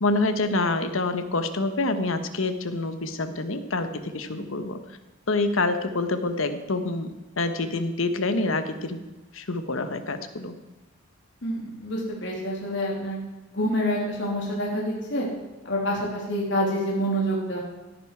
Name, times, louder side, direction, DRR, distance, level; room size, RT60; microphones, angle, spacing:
voice 1, 0.0-4.8 5.3-7.1 7.4-9.0 9.3-10.5, left 2 dB, 80° left, 9 dB, 1.2 m, -26 dB
voice 2, 4.3-4.6 11.4-13.2 13.5-15.3 15.6-17.6, equal, 60° left, -3 dB, 3.0 m, -27 dB
16.5 x 9.8 x 4.7 m, 1.2 s
head